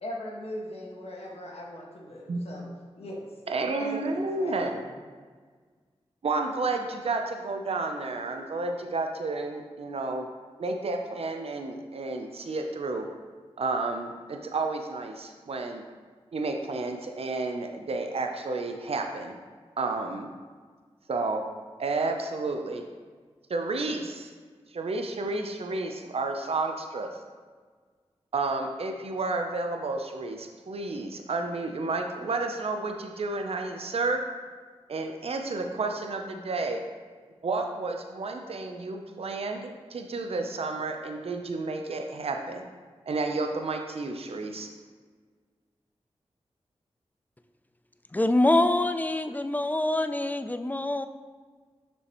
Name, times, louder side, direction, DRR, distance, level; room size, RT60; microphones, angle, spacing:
voice 1, 0.0-2.7 3.0-3.3 3.8-5.0, left 1 dB, 65° left, -3 dB, 1.5 m, -39 dB
voice 2, 3.5-4.8 6.2-10.3 10.6-13.1 13.6-15.8 16.3-19.4 19.8-20.3 21.1-21.4 21.8-22.8 23.5-24.3 24.7-27.1 28.3-34.2 34.9-36.8 37.4-42.7 43.1-44.7, right 3 dB, 65° right, 4 dB, 0.6 m, -31 dB
voice 3, 48.1-51.1, left 2 dB, 15° left, 10 dB, 0.4 m, -25 dB
6.3 x 6.1 x 3.0 m, 1.5 s
cardioid pair, 45°, 11 cm